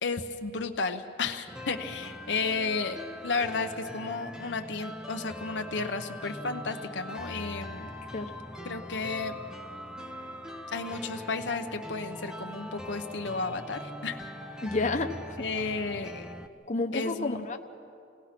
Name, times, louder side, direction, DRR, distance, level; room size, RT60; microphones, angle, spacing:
voice 1, 0.0-8.0 8.6-9.4 10.7-14.3 15.4-16.3 16.9-17.5, left 4 dB, 75° left, 5 dB, 0.9 m, -33 dB
sound 1, 1.5-16.5, left 1 dB, 5° right, 0.8 m, -42 dB
voice 2, 14.6-15.4 16.7-17.6, left 3 dB, 40° left, 5 dB, 1.0 m, -30 dB
27.5 x 18.5 x 5.9 m, 2.5 s
head